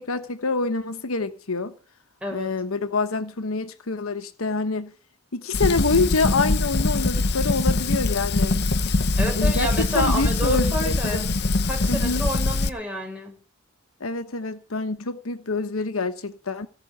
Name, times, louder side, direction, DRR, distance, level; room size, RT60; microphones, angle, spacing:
voice 1, 0.0-1.7 2.3-4.9 5.3-8.6 9.3-11.3 11.9-12.2 14.0-16.7, left 3 dB, 85° left, 1.2 m, -26 dB
voice 2, 2.2-2.5 9.2-11.3 11.6-13.4, equal, 5° right, 6.4 m, -29 dB
Fire, 5.5-12.7, left 2 dB, 55° left, 1.0 m, -23 dB
17.5 x 6.2 x 9.5 m
head